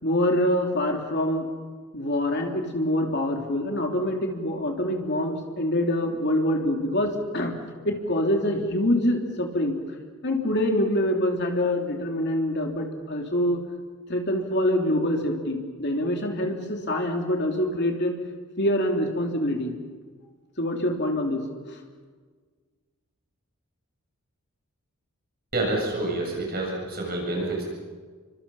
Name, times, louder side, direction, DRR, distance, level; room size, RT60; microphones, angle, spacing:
voice 1, 0.0-1.4 1.9-7.5 7.8-9.7 10.2-13.6 14.1-18.1 18.6-19.7 20.6-21.4 21.7-21.8, left 1 dB, 50° left, 2 dB, 3.3 m, -25 dB
voice 2, 25.5-27.6, right 2 dB, 45° right, -1 dB, 7.2 m, -28 dB
29.5 x 25.0 x 5.7 m, 1.5 s
head